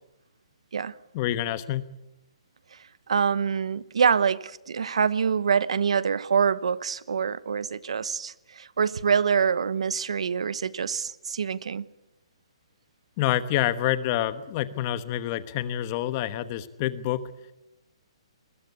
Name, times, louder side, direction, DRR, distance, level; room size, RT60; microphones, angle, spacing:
voice 1, 1.1-1.8 13.2-17.2, left 13 dB, 25° left, 1.1 m, -27 dB
voice 2, 3.1-11.9, right 6 dB, 75° right, 1.1 m, -25 dB
23.5 x 21.0 x 8.2 m
hypercardioid pair, 175°, 3 cm